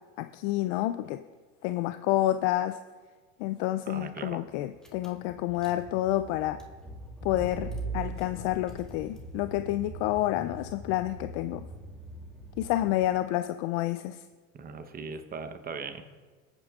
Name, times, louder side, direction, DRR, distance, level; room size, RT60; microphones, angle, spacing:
voice 1, 0.2-1.2 1.6-2.8 3.4-6.6 7.2-11.7 12.6-14.2, left 14 dB, 60° left, 10 dB, 0.5 m, -29 dB
voice 2, 3.9-4.4 14.5-16.0, right 5 dB, 20° right, 8 dB, 0.9 m, -39 dB
Car / Engine, 4.8-13.2, right 2 dB, ahead, 1.8 m, -41 dB
21.5 x 8.9 x 2.4 m, 1.4 s
supercardioid pair, 120°, 40 cm